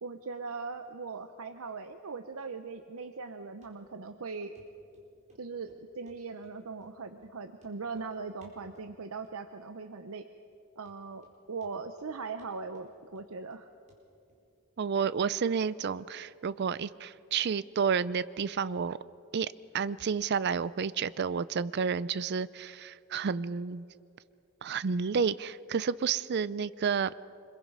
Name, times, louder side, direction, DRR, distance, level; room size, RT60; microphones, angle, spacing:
voice 1, 0.0-4.5 5.4-10.2 10.8-13.7, right 4 dB, 80° right, 8 dB, 0.8 m, -40 dB
Run, 3.6-3.7 4.1-4.2 4.5-4.7 4.9-5.4 5.7-6.5 6.8-6.9 7.2-7.3 7.6-8.1 8.4-8.9 9.2-9.7 10.0-10.1 10.5-10.6 10.9-11.4 11.6-12.1 12.4-13.6 13.9-14.0 14.3-14.4, right 1 dB, 35° right, 4.4 m, -61 dB
voice 2, 14.8-19.0 19.3-23.8 24.6-27.1, right 6 dB, 50° right, 17 dB, 0.4 m, -30 dB
26.0 x 22.0 x 5.5 m, 2.6 s
head